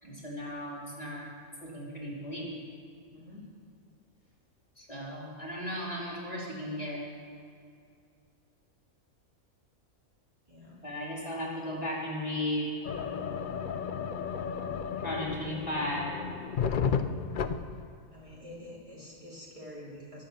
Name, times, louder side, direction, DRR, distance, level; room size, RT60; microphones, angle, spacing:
voice 1, 0.0-1.3 1.6-2.5 4.8-7.0 10.8-12.7 15.0-16.1, left 1 dB, 25° left, -5 dB, 3.0 m, -35 dB
voice 2, 3.1-3.5 10.5-10.8 16.8-17.0 18.1-20.2, left 1 dB, 20° right, -6 dB, 2.8 m, -47 dB
sound 1, 12.8-17.9, left 6 dB, 55° left, 0.5 m, -33 dB
22.0 x 7.5 x 6.8 m, 2.3 s
omnidirectional pair, 1.5 m